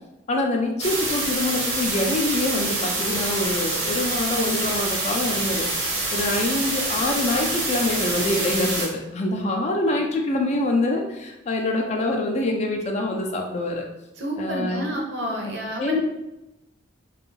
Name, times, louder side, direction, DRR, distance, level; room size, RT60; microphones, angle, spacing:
voice 1, 0.3-5.7 6.1-13.9 14.4-14.8 15.4-16.0, left 2 dB, 35° left, 2 dB, 0.3 m, -25 dB
sound 1, 0.8-8.9, right 2 dB, 90° right, 0.9 m, -26 dB
voice 2, 14.2-16.0, equal, 60° right, 0 dB, 0.6 m, -29 dB
2.5 x 2.3 x 3.0 m, 0.94 s
head